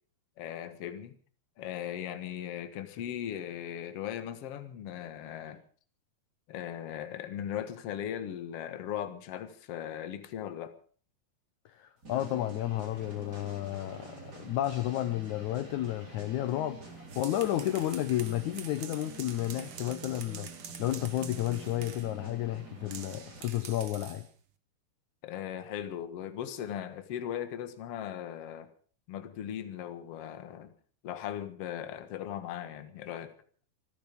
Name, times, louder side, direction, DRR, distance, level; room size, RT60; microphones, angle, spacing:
voice 1, 0.4-1.2 1.6-5.6 6.5-10.8 25.2-28.7 29.1-30.7 31.0-33.3, left 10 dB, 55° left, 9 dB, 1.8 m, -38 dB
voice 2, 11.7-16.8 17.2-20.5 20.8-24.3, left 14 dB, 75° left, 11 dB, 1.8 m, -32 dB
sound 1, 12.0-23.4, right 3 dB, 25° right, 4.3 m, -48 dB
sound 2, 16.9-22.1 22.9-24.3, right 8 dB, 75° right, 1.2 m, -47 dB
26.0 x 10.5 x 5.3 m, 0.43 s
omnidirectional pair, 4.5 m